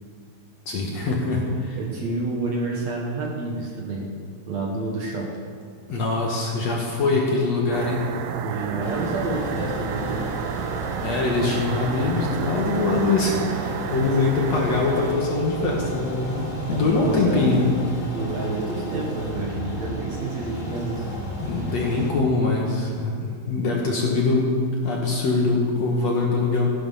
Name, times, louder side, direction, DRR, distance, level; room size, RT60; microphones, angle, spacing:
voice 1, 0.7-1.8 5.9-8.0 11.0-17.7 21.4-24.5 24.8-26.7, left 3 dB, 55° left, -1 dB, 2.1 m, -23 dB
voice 2, 1.7-4.1 4.5-5.3 8.4-10.3 16.7-17.5 18.1-21.1, right 3 dB, 60° right, -2 dB, 2.1 m, -29 dB
sound 1, 7.7-15.1, right 7 dB, 75° right, 2.1 m, -31 dB
sound 2, 8.8-22.1, equal, 20° left, 2.5 m, -33 dB
15.0 x 11.0 x 5.6 m, 2.2 s
omnidirectional pair, 4.3 m